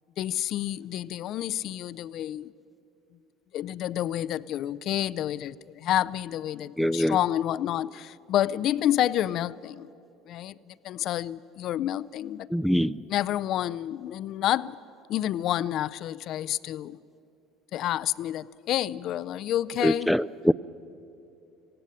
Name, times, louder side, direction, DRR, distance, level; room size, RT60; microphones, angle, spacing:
voice 1, 0.2-2.5 3.5-9.9 10.3-12.5 13.1-14.8 15.1-17.0 17.7-20.1, left 12 dB, 55° left, 0.5 m, -29 dB
voice 2, 6.8-7.2 12.5-13.0 19.8-20.5, equal, ahead, 0.5 m, -23 dB
19.0 x 16.5 x 9.9 m
hypercardioid pair, 70°, 0 cm